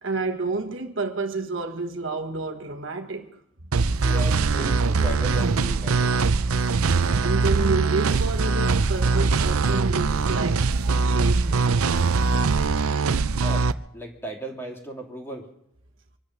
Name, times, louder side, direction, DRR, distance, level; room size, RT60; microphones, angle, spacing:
voice 1, 0.0-3.4 7.2-11.7, right 3 dB, 60° right, 1.4 m, -30 dB
sound 1, 3.7-13.7, right 4 dB, 90° right, 0.7 m, -22 dB
voice 2, 4.0-6.2 13.4-15.5, equal, 10° left, 2.6 m, -36 dB
25.5 x 9.7 x 5.8 m
head